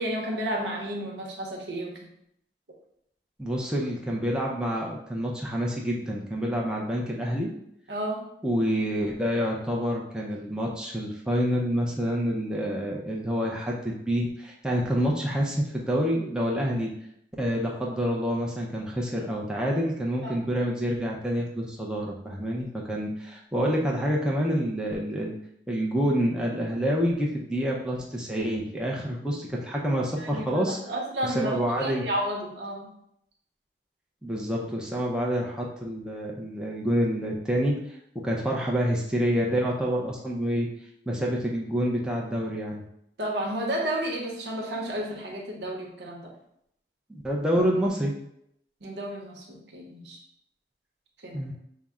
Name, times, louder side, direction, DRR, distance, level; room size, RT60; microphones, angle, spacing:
voice 1, 0.0-1.9 7.9-8.2 20.2-20.3 30.2-32.9 43.2-46.3 48.8-50.2 51.2-51.4, right 1 dB, 80° right, 0 dB, 0.9 m, -32 dB
voice 2, 3.4-7.5 8.4-16.9 17.4-25.4 25.7-30.8 31.2-32.0 34.2-37.8 38.2-40.7 41.1-42.8 47.1-48.1 51.3-51.5, equal, 5° right, -3 dB, 0.5 m, -27 dB
5.5 x 2.0 x 3.6 m, 0.75 s
head